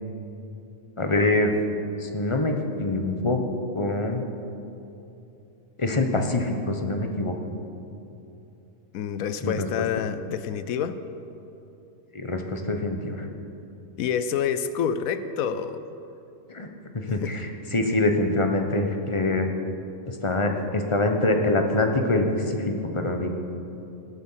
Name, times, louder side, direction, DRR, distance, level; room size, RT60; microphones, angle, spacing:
voice 1, 1.0-1.5 2.0-3.4 3.7-4.2 5.8-7.3 9.4-9.7 12.1-13.3 16.5-19.5 20.1-23.3, left 2 dB, 25° left, 4 dB, 0.9 m, -25 dB
voice 2, 8.9-11.0 14.0-15.8 17.1-17.3, left 8 dB, 80° left, 11 dB, 1.0 m, -28 dB
18.0 x 8.5 x 5.7 m, 2.8 s
omnidirectional pair, 1.5 m